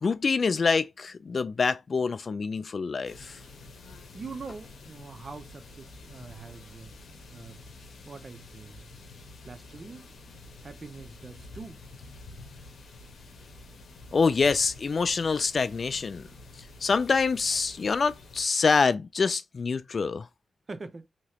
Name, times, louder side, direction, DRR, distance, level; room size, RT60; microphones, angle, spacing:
voice 1, 0.0-3.4 14.1-16.3 16.8-20.3, left 5 dB, 55° left, 0.4 m, -26 dB
sound 1, 3.0-18.4, left 2 dB, 75° left, 1.0 m, -48 dB
voice 2, 4.1-6.9 7.3-7.6 8.1-8.9 9.4-10.1 10.6-11.8 20.7-21.1, right 4 dB, 45° right, 0.7 m, -43 dB
3.0 x 2.9 x 2.8 m
cardioid pair, 60°, 0 cm